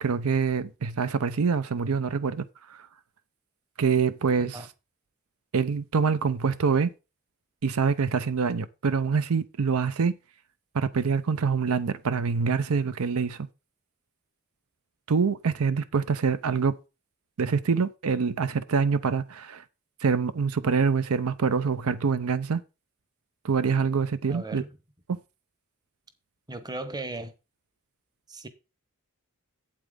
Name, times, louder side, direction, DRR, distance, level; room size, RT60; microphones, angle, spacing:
voice 1, 0.0-2.4 2.7-2.9 3.8-4.6 5.5-6.9 7.6-10.1 10.7-13.5 15.1-16.7 17.4-19.6 20.0-22.6 23.4-24.6 25.1-25.2, right 5 dB, 75° right, 0.6 m, -25 dB
voice 2, 24.3-24.8 26.5-27.3 28.3-28.5, right 2 dB, 20° right, 0.9 m, -36 dB
8.6 x 8.2 x 3.7 m
head